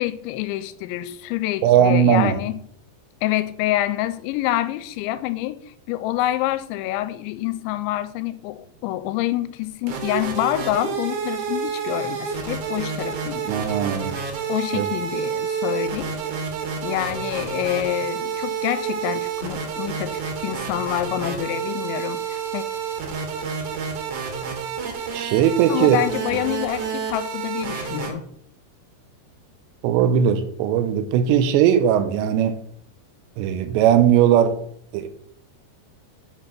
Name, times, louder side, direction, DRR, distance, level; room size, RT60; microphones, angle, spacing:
voice 1, 0.0-2.6 3.2-5.6 5.9-13.8 14.5-16.2 16.8-22.6 25.7-28.2, left 14 dB, 90° left, 13 dB, 2.9 m, -27 dB
voice 2, 1.6-2.4 13.5-14.2 14.7-14.9 25.1-26.0 29.8-32.6 33.4-34.6 34.9-35.1, right 9 dB, 85° right, 11 dB, 2.8 m, -18 dB
sound 1, 9.6-28.1, right 6 dB, 65° right, 2.2 m, -29 dB
6.2 x 5.3 x 5.8 m, 0.70 s
omnidirectional pair, 5.1 m